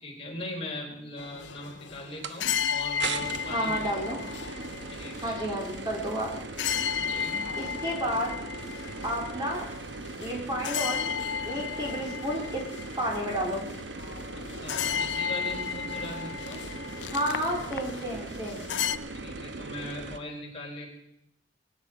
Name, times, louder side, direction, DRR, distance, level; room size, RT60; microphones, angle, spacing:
voice 1, 0.0-3.9 4.9-5.4 7.0-7.5 14.6-16.7 19.1-21.0, left 1 dB, 35° left, -1 dB, 3.8 m, -40 dB
sound 1, 1.2-19.0, left 8 dB, 75° left, 0.5 m, -34 dB
sound 2, 2.2-2.4 3.0-20.2, right 3 dB, 70° right, 1.0 m, -39 dB
voice 2, 3.5-4.2 5.2-6.3 7.6-8.3 9.0-9.7 10.2-11.1 11.4-12.7 13.0-13.7 17.1-18.7, equal, 25° right, -1 dB, 3.1 m, -31 dB
23.0 x 9.7 x 4.8 m, 0.76 s
head